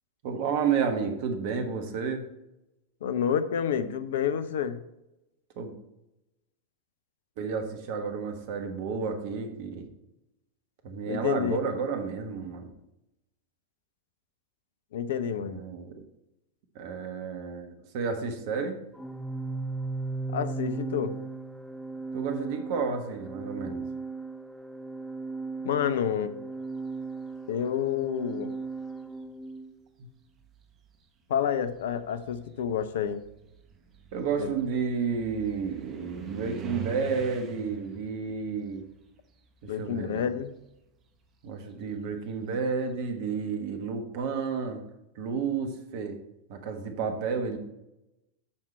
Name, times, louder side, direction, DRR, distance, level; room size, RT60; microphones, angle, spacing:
voice 1, 0.2-2.2 5.6-5.7 7.4-9.9 10.8-12.7 15.4-16.0 16.7-18.8 22.1-23.8 30.0-30.1 34.1-38.8 39.6-40.3 41.4-44.8 45.1-46.2 46.5-47.6, right 5 dB, 50° right, 6 dB, 1.4 m, -31 dB
voice 2, 3.0-4.8 11.1-11.6 14.9-15.6 20.3-21.1 25.6-26.3 27.5-28.5 31.3-33.2 34.4-34.5 39.7-40.5, left 8 dB, 60° left, 12 dB, 0.6 m, -29 dB
Organ, 19.0-29.7, right 3 dB, ahead, 0.4 m, -37 dB
sound 1, 28.0-28.6 29.5-29.6 30.2-40.1 40.4-43.0, right 5 dB, 30° right, 1.1 m, -46 dB
8.7 x 5.8 x 4.4 m, 0.89 s
figure-of-eight pair, 90°, 0 cm